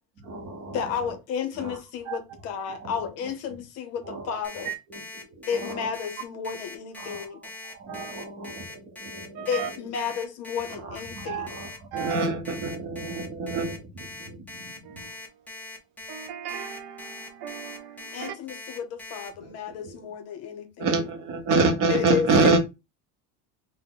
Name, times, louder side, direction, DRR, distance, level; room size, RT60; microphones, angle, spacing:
voice 1, 0.2-0.9 1.6-1.8 2.8-3.0 4.0-4.7 5.3-5.9 7.0-9.4 10.7-15.0 19.4-19.5 19.8-20.0 20.8-22.6, right 3 dB, 35° right, 0.8 m, -28 dB
voice 2, 0.7-4.7 5.5-7.4 9.5-11.5 18.1-20.9 21.9-22.6, left 7 dB, 40° left, 0.7 m, -32 dB
Alarm, 4.4-19.3, left 2 dB, 5° left, 0.5 m, -41 dB
voice 3, 9.3-9.7 11.2-11.5 11.9-12.2 14.8-15.6 16.1-18.4, right 9 dB, 55° right, 0.6 m, -36 dB
4.1 x 2.2 x 3.7 m
cardioid pair, 170°, 39 cm